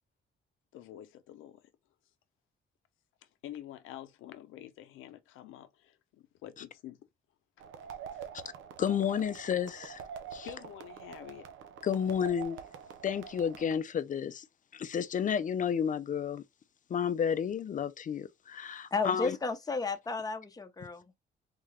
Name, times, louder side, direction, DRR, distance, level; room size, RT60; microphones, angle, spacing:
voice 1, 0.7-1.6 3.4-7.1 7.9-8.0 10.4-11.5, left 12 dB, 85° left, 0.6 m, -48 dB
sound 1, 7.6-13.8, right 8 dB, 80° right, 0.7 m, -46 dB
voice 2, 8.8-10.0 10.3-10.5 11.8-12.6 13.0-14.4 14.7-16.4 16.9-19.4, left 8 dB, 40° left, 0.5 m, -31 dB
voice 3, 18.9-21.0, left 4 dB, 20° left, 0.8 m, -33 dB
3.8 x 2.2 x 3.2 m
cardioid pair, 90°, 20 cm